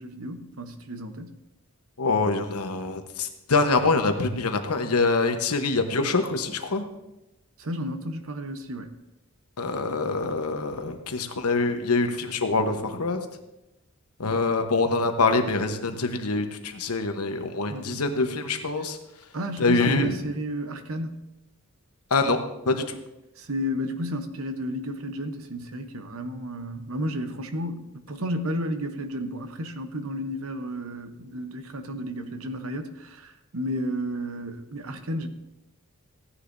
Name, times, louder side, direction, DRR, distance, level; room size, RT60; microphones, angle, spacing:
voice 1, 0.0-1.3 7.6-8.9 17.7-18.3 18.8-18.9 19.3-21.1 23.4-35.3, equal, 70° right, 8 dB, 1.0 m, -32 dB
voice 2, 2.0-6.8 9.6-13.2 14.2-19.0 19.6-20.1 22.1-22.4 22.7-23.0, left 3 dB, 90° left, 6 dB, 1.1 m, -25 dB
15.5 x 10.0 x 2.7 m, 0.92 s
head